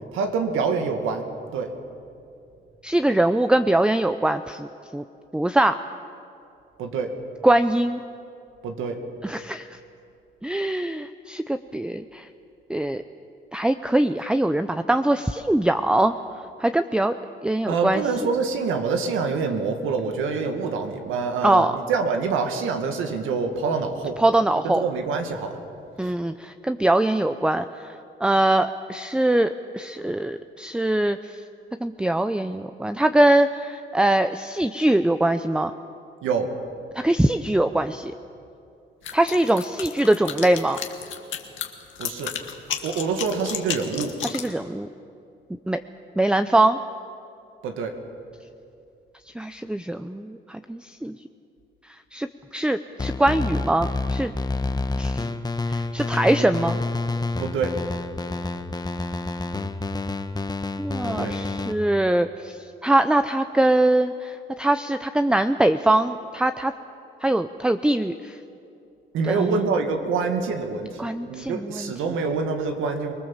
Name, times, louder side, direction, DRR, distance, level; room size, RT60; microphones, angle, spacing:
voice 1, 0.1-1.3 1.5-1.7 6.8-7.1 8.6-9.0 17.7-24.2 24.6-25.6 26.0-26.1 36.2-36.5 42.0-42.4 42.8-44.1 47.6-48.0 56.4-56.5 57.4-57.8 61.1-61.4 69.1-73.1, right 5 dB, 90° right, 5 dB, 2.1 m, -26 dB
voice 2, 2.8-4.7 4.9-5.0 5.3-5.8 7.4-8.0 9.2-9.6 10.4-12.3 12.7-13.0 13.5-16.1 16.6-17.1 17.4-18.0 21.4-21.8 24.2-24.9 26.0-31.4 31.8-35.7 36.9-38.1 39.1-40.8 44.2-44.9 45.7-45.8 46.2-46.8 49.3-51.1 52.1-52.3 52.5-54.3 55.0-55.3 55.7-56.8 60.8-66.7 67.2-68.4 69.2-69.6 71.0-71.9, right 1 dB, 5° right, 9 dB, 0.6 m, -22 dB
sound 1, 39.0-44.5, left 9 dB, 75° left, 2.0 m, -32 dB
sound 2, 53.0-61.7, left 2 dB, 20° left, 1.2 m, -28 dB
25.0 x 19.5 x 7.3 m, 2.5 s
cardioid pair, 90°, 20 cm